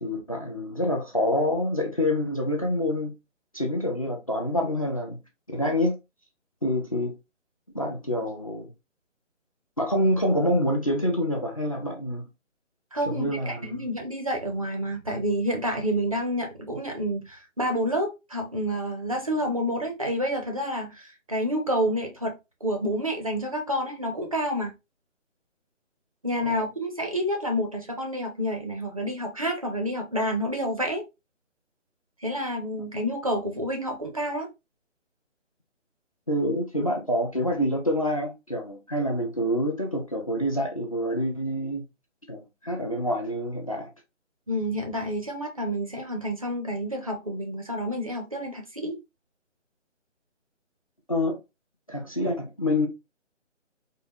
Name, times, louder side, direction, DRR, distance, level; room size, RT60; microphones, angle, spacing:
voice 1, 0.0-3.1 3.5-5.2 5.5-5.9 6.6-7.1 7.7-8.7 9.8-12.2 13.1-13.7 26.4-26.5 36.3-41.8 42.3-43.9 51.1-51.4 51.9-52.9, left 1 dB, 30° left, 0.4 m, -26 dB
voice 2, 12.9-22.3 22.6-24.7 26.2-31.0 32.2-34.5 44.5-49.0, equal, 30° right, 0.5 m, -29 dB
3.7 x 2.4 x 2.7 m
figure-of-eight pair, 150°, 37 cm